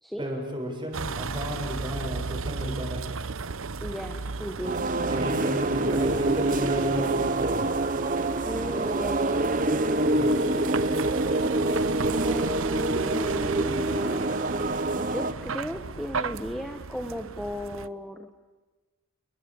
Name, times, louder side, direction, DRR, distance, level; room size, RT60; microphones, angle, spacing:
voice 1, 0.2-3.0 5.1-7.7 10.1-10.6, equal, 20° right, 2 dB, 6.8 m, -33 dB
Vehicle, 0.9-17.9, right 4 dB, 65° right, 0.8 m, -35 dB
voice 2, 3.8-4.9 8.4-9.5 12.2-14.3 14.9-18.3, equal, ahead, 5 dB, 1.3 m, -36 dB
sound 1, 4.6-15.3, right 2 dB, 35° right, 1.1 m, -26 dB
29.5 x 22.0 x 8.1 m, 1.2 s
head